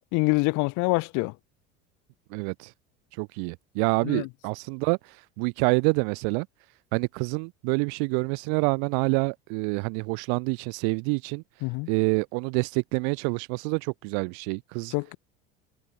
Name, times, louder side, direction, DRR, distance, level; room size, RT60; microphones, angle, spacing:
voice 1, 0.1-1.3 4.0-4.3 11.6-11.9 14.9-15.2, left 28 dB, 70° left, 2.2 m, -25 dB
voice 2, 2.3-2.7 3.2-5.0 5.4-6.5 6.9-11.4 11.9-14.9, right 40 dB or more, 75° right, 1.1 m, -27 dB
supercardioid pair, 105°, 30 cm